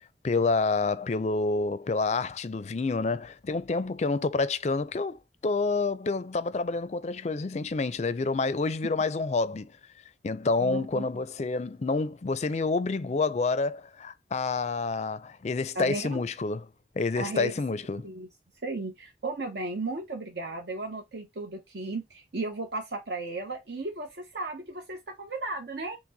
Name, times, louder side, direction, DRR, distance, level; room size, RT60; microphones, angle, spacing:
voice 1, 0.2-9.7 10.2-16.6 17.0-18.1, left 3 dB, 40° left, 0.4 m, -28 dB
voice 2, 10.6-11.0 15.7-16.2 17.1-17.5 18.0-18.3 18.6-26.0, right 2 dB, 70° right, 0.8 m, -35 dB
5.9 x 2.1 x 3.9 m
head